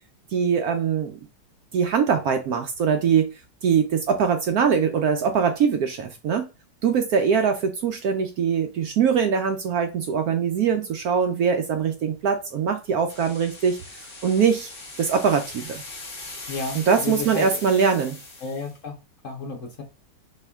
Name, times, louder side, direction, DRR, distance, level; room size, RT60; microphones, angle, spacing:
voice 1, 0.3-1.2 1.7-3.3 3.6-6.5 6.8-14.7 15.0-15.8 16.7-18.2, right 6 dB, 70° right, 6 dB, 0.9 m, -22 dB
sound 1, 13.1-18.8, left 2 dB, 35° left, 1.4 m, -40 dB
voice 2, 16.5-17.5 18.4-19.0 19.2-19.8, left 4 dB, 50° left, 2 dB, 1.1 m, -32 dB
4.3 x 3.0 x 3.5 m, 0.28 s
omnidirectional pair, 1.9 m